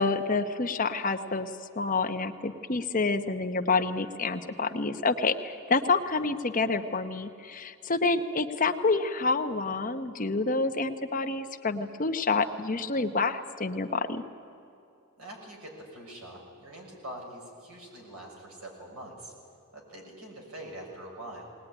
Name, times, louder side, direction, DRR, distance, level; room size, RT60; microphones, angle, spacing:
voice 1, 0.0-1.5 1.8-14.2, left 3 dB, 35° left, 7 dB, 0.9 m, -28 dB
voice 2, 15.2-19.3 19.7-21.5, right 1 dB, 80° right, 0 dB, 6.2 m, -44 dB
20.0 x 19.5 x 9.9 m, 2.7 s
head